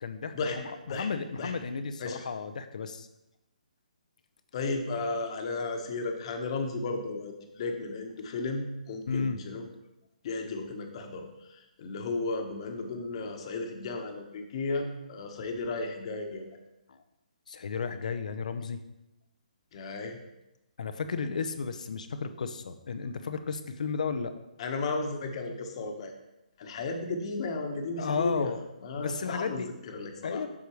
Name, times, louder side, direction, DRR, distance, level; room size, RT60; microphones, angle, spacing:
voice 1, 0.0-3.1 9.1-9.4 16.9-17.0 17.5-18.8 20.8-24.3 28.0-28.6 28.9-29.7 30.2-30.5, left 5 dB, 60° left, 10 dB, 0.7 m, -33 dB
voice 2, 4.5-9.7 10.2-16.5 19.7-20.2 24.6-26.1 26.6-28.5 28.8-30.4, left 3 dB, 40° left, 4 dB, 1.2 m, -34 dB
8.6 x 6.6 x 3.2 m, 0.94 s
figure-of-eight pair, 140°, 4 cm